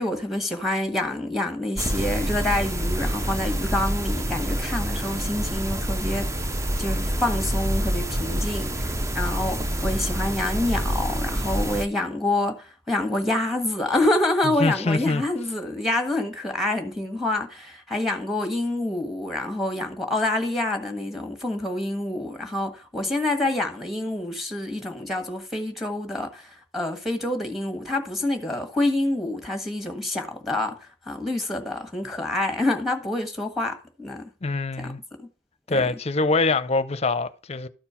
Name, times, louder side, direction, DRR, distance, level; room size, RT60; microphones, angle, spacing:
voice 1, 0.0-6.3 6.8-34.3 34.8-34.9 35.7-35.9, left 1 dB, ahead, 1.4 m, -27 dB
sound 1, 1.8-11.9, right 1 dB, 15° right, 0.6 m, -27 dB
voice 2, 14.6-15.2 34.4-35.0 35.7-37.7, left 3 dB, 35° left, 0.6 m, -24 dB
13.0 x 4.4 x 5.6 m
head